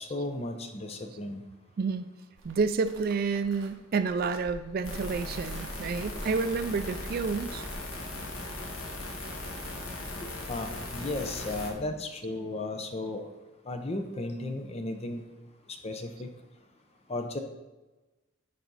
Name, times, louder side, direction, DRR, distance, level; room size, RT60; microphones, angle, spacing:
voice 1, 0.0-1.4 10.2-13.3 13.7-15.3 15.7-16.3 17.1-17.4, left 2 dB, 30° left, 6 dB, 0.7 m, -35 dB
voice 2, 2.4-7.6, right 4 dB, 45° right, 10 dB, 0.3 m, -29 dB
sound 1, 2.4-7.7, right 2 dB, 65° right, 0.9 m, -47 dB
sound 2, 4.8-11.7, left 1 dB, 80° left, 1.5 m, -38 dB
10.5 x 4.1 x 4.0 m, 1.1 s
head